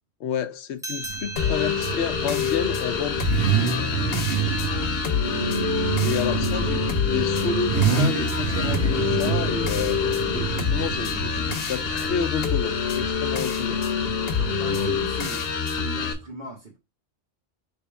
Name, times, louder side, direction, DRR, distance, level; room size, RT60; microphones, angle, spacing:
voice 1, 0.2-3.2 6.0-6.8 7.1-10.0 10.3-13.8, left 8 dB, 90° left, 0.9 m, -30 dB
sound 1, 0.8-5.7, right 3 dB, 5° right, 0.3 m, -40 dB
Car / Idling / Accelerating revving vroom, 1.0-13.1, right 7 dB, 80° right, 1.3 m, -28 dB
sound 2, 1.4-16.1, left 6 dB, 60° left, 1.0 m, -26 dB
voice 2, 4.6-5.3 6.5-6.6 10.0-10.3 14.4-16.8, right 2 dB, 50° right, 1.4 m, -39 dB
3.4 x 3.4 x 4.5 m
omnidirectional pair, 1.1 m